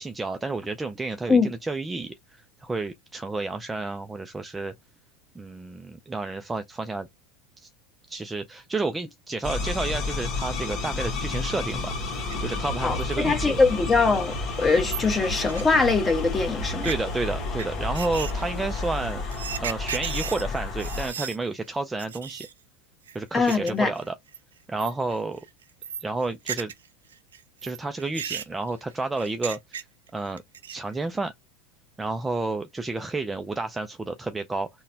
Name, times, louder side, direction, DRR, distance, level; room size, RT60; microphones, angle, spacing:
voice 1, 0.0-2.1 2.6-4.7 5.4-7.1 7.6-7.7 8.1-13.6 16.8-19.2 19.6-22.5 23.1-24.1 24.7-25.4 26.0-26.7 27.6-29.9 30.1-30.4 30.7-31.3 32.0-34.7, right 3 dB, 15° right, 0.4 m, -30 dB
sound 1, 9.4-21.1, left 3 dB, 40° left, 1.1 m, -31 dB
sound 2, 12.1-12.6 13.0-13.1 13.5-13.6 13.9-14.0 14.3-14.4 14.5-16.2 16.7-17.0 17.6-17.7 17.9-21.4 21.7-21.8 22.0-22.5 23.1-23.7 24.0-24.4 24.8-25.2 25.4-26.9 27.1-30.1 30.4-30.9, right 8 dB, 85° right, 0.4 m, -36 dB
voice 2, 12.8-16.9 23.3-23.9, left 4 dB, 20° left, 1.1 m, -22 dB
3.9 x 2.1 x 2.7 m
hypercardioid pair, 100°, 0 cm